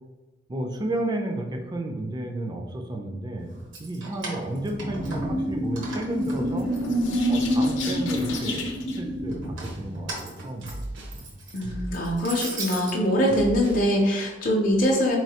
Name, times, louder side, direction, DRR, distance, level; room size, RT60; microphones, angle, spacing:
voice 1, 0.5-3.5 3.8-6.7 7.3-10.8 11.1-11.2, right 1 dB, 20° right, 3 dB, 0.4 m, -32 dB
Keys jangling, 3.5-5.5 5.8-7.4 7.8-8.5 9.3-13.0, right 2 dB, 85° right, 1.0 m, -38 dB
sound 1, 4.7-10.0, equal, 85° left, 0.6 m, -27 dB
sound 2, 9.3-9.9 10.6-11.2 11.6-12.5 13.3-13.9, right 1 dB, 65° right, 0.6 m, -37 dB
voice 2, 11.5-15.2, equal, 45° left, -2 dB, 0.5 m, -23 dB
4.0 x 3.1 x 2.8 m, 1.1 s
head